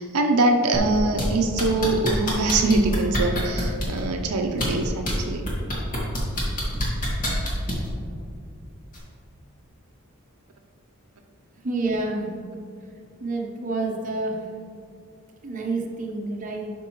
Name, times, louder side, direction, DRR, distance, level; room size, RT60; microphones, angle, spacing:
voice 1, 0.0-5.5, right 2 dB, 90° right, 3 dB, 0.7 m, -23 dB
sound 1, 0.7-1.2 1.6-4.0 4.5-5.1 5.5-7.9 8.9-9.0, equal, 40° left, 1.8 m, -27 dB
voice 2, 11.6-12.3 13.2-14.5 15.4-16.7, right 2 dB, 35° right, 0 dB, 0.9 m, -28 dB
11.5 x 5.3 x 3.0 m, 2.4 s
head